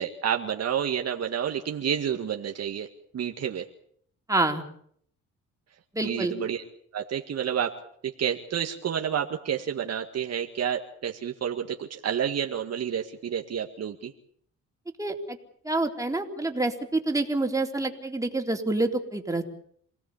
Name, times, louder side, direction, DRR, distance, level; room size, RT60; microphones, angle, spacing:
voice 1, 0.0-2.9 3.1-3.7 6.0-6.6 6.9-7.7 8.0-14.1, right 8 dB, 60° right, 3 dB, 1.9 m, -29 dB
voice 2, 4.3-4.6 5.9-6.3 15.0-15.4 15.6-19.4, right 2 dB, 10° right, 3 dB, 3.8 m, -27 dB
27.5 x 17.5 x 7.2 m, 0.63 s
cardioid pair, 90°, 30 cm